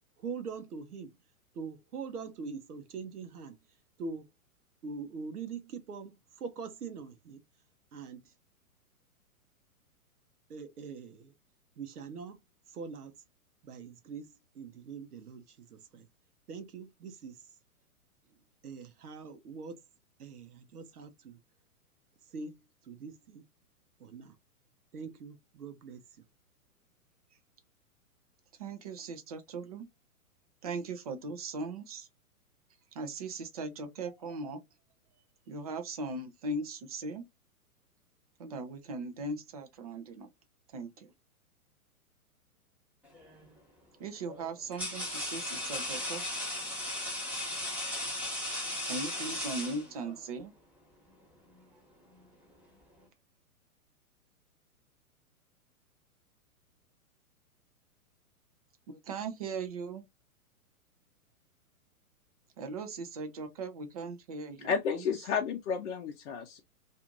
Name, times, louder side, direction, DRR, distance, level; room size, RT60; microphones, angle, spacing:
voice 1, 0.2-1.1 1.5-3.5 4.0-4.2 4.8-7.4 7.9-8.2 10.5-11.3 11.8-12.4 12.7-13.1 13.6-14.3 14.5-16.1 16.5-17.4 18.6-19.8 20.2-21.4 22.3-22.5 22.8-23.4 24.0-24.3 24.9-26.0, right 5 dB, 85° right, 0.7 m, -43 dB
voice 2, 28.6-29.9 30.6-32.1 32.9-34.6 35.5-37.2 38.4-40.3 40.7-41.1 44.0-46.2 48.9-50.5 58.9-60.0 62.6-65.1, right 3 dB, 30° right, 0.3 m, -39 dB
sound 1, 43.1-43.5 44.3-50.2, left 1 dB, 5° right, 0.8 m, -36 dB
voice 3, 64.6-66.6, left 6 dB, 55° left, 0.6 m, -32 dB
2.5 x 2.4 x 2.9 m
hypercardioid pair, 120°, 44 cm